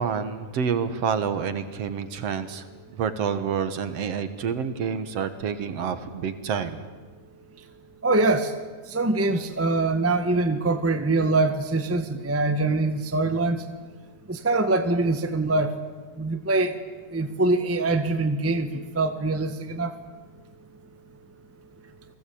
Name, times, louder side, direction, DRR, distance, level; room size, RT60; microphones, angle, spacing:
voice 1, 0.0-2.7 2.9-6.8, right 6 dB, 60° right, 11 dB, 2.3 m, -28 dB
voice 2, 8.0-8.5 8.9-13.6 14.3-15.7 16.2-16.8 17.1-19.9, right 2 dB, 10° right, 8 dB, 0.8 m, -24 dB
30.0 x 20.0 x 8.7 m, 1.4 s
omnidirectional pair, 3.5 m